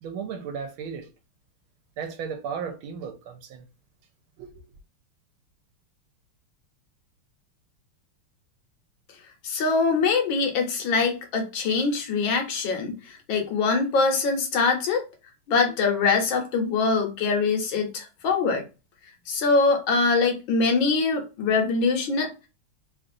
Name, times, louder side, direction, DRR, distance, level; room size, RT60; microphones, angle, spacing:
voice 1, 0.0-1.1 2.0-3.6 4.4-4.6, right 6 dB, 75° right, 1.5 m, -35 dB
voice 2, 9.4-15.0 15.5-18.6 19.3-22.5, left 4 dB, 70° left, 1.5 m, -23 dB
3.6 x 2.4 x 2.5 m
omnidirectional pair, 2.3 m